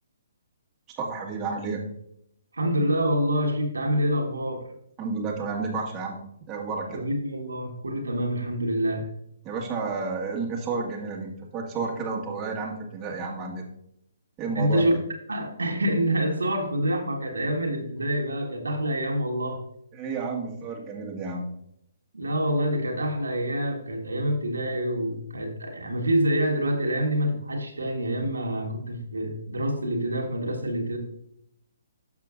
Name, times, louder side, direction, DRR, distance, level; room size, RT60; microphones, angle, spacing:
voice 1, 1.0-1.9 5.0-7.0 9.4-13.7 14.4-14.9 19.9-21.5, right 4 dB, 20° right, -2 dB, 1.6 m, -31 dB
voice 2, 2.5-4.6 6.9-9.1 14.5-14.9 15.3-19.6 22.1-31.0, equal, 80° right, 2 dB, 1.5 m, -26 dB
12.0 x 6.7 x 2.5 m, 0.76 s
figure-of-eight pair, 135°, 0 cm